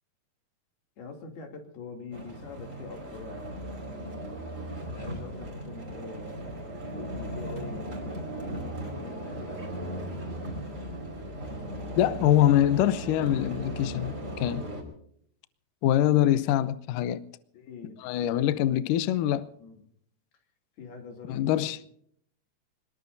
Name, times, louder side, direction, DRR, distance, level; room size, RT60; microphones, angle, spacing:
voice 1, 1.0-3.5 4.9-6.4 6.9-9.9 11.6-12.3 17.5-18.6 19.6-19.8 20.8-21.9, left 4 dB, 65° left, 4.6 m, -44 dB
sound 1, 2.1-14.8, right 1 dB, 20° right, 4.2 m, -37 dB
voice 2, 12.0-14.6 15.8-17.2 18.0-19.5 21.3-21.8, left 12 dB, 85° left, 1.8 m, -24 dB
26.0 x 20.5 x 2.7 m
omnidirectional pair, 4.9 m